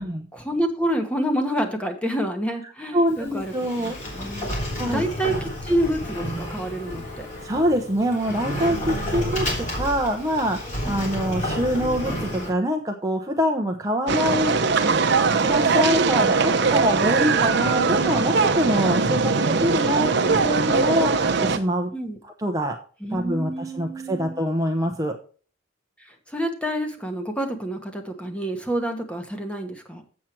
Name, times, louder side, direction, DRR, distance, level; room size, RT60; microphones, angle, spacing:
voice 1, 0.3-4.5 4.8-7.3 10.9-11.1 21.9-22.2 23.0-24.4 26.0-30.0, right 1 dB, 5° left, 5 dB, 1.2 m, -28 dB
voice 2, 2.9-4.0 4.3-5.0 7.4-9.5 9.7-10.6 10.8-14.5 14.8-14.9 15.4-21.9 22.4-22.8 23.1-25.2, equal, 20° right, 3 dB, 0.7 m, -25 dB
Sliding door, 3.1-12.5, equal, 40° left, 3.1 m, -30 dB
sound 1, 14.1-21.6, right 4 dB, 60° right, 0.8 m, -21 dB
7.6 x 7.3 x 4.5 m, 0.39 s
head